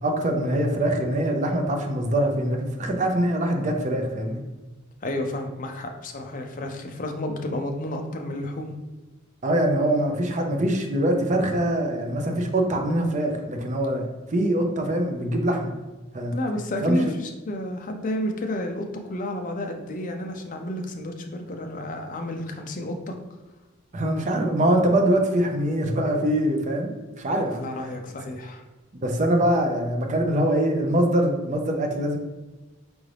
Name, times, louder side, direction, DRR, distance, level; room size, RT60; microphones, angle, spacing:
voice 1, 0.0-4.4 9.4-15.7 16.1-16.3 16.8-17.0 23.9-26.9 27.2-27.6 29.0-32.2, right 1 dB, 35° right, 3 dB, 0.5 m, -23 dB
voice 2, 5.0-8.7 16.3-23.1 27.4-28.6, left 1 dB, 40° left, 4 dB, 0.5 m, -31 dB
4.6 x 2.6 x 3.3 m, 1.2 s
head